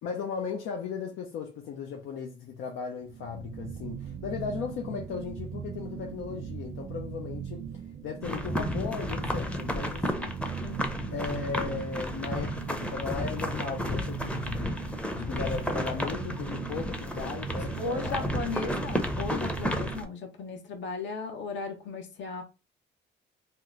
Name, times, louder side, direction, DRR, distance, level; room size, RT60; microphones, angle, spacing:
voice 1, 0.0-10.4 11.1-18.3, left 6 dB, 85° left, 0.6 m, -36 dB
sound 1, 3.0-20.1, right 7 dB, 45° right, 0.4 m, -39 dB
sound 2, 8.2-20.0, left 1 dB, 5° left, 0.6 m, -33 dB
voice 2, 17.8-22.4, left 4 dB, 70° left, 0.9 m, -36 dB
2.9 x 2.1 x 3.6 m
cardioid pair, 90°, 20 cm